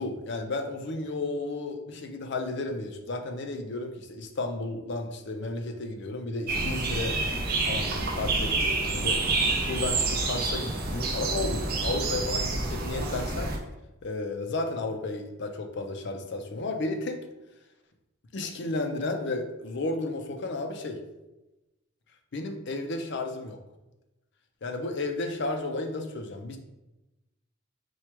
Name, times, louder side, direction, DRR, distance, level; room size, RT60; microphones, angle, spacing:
voice 1, 0.0-7.2 7.5-9.2 9.7-13.5 14.0-17.2 18.3-21.0 22.3-23.6 24.6-26.6, left 2 dB, 60° left, 5 dB, 0.5 m, -33 dB
sound 1, 6.5-13.6, right 3 dB, 50° right, 0.7 m, -28 dB
4.4 x 2.3 x 4.6 m, 1.0 s
head